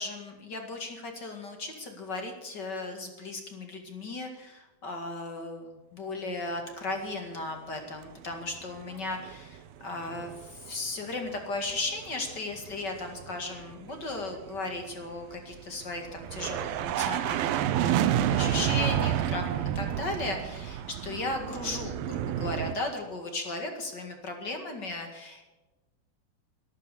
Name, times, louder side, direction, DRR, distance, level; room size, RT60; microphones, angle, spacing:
voice 1, 0.0-17.6 17.8-25.5, left 2 dB, 35° left, 4 dB, 2.0 m, -36 dB
sound 1, 8.6-9.6 9.8-10.7 11.0-22.8, right 11 dB, 85° right, 2.6 m, -30 dB
13.0 x 13.0 x 6.8 m, 1.1 s
omnidirectional pair, 4.2 m